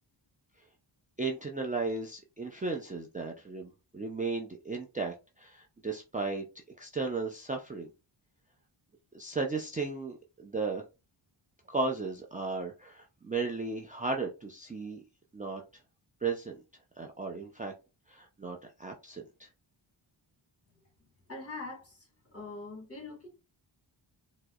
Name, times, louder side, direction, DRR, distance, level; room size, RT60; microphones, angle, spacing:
voice 1, 1.2-6.4 6.8-7.9 9.1-10.8 11.7-15.0 15.3-15.6 16.2-16.6 17.0-17.7 18.1-19.5, right 3 dB, 15° right, 0.5 m, -35 dB
voice 2, 21.3-22.0 22.3-23.3, left 3 dB, 30° left, 1.6 m, -42 dB
4.6 x 2.1 x 2.3 m
cardioid pair, 60°, 48 cm